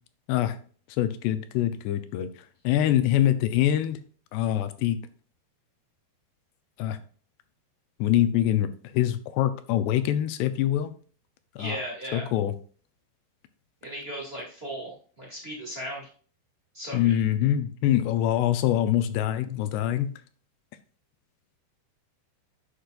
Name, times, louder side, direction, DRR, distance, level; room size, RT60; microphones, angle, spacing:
voice 1, 0.9-2.3 2.6-4.0 4.3-5.0 6.8-7.0 8.0-8.7 8.9-10.9 11.6-11.8 12.1-12.5 16.9-20.1, left 12 dB, 80° left, 12 dB, 2.6 m, -24 dB
voice 2, 11.6-12.3 13.8-16.1 16.7-17.1, right 1 dB, 25° right, -4 dB, 1.3 m, -36 dB
10.0 x 6.4 x 2.5 m, 0.42 s
omnidirectional pair, 5.1 m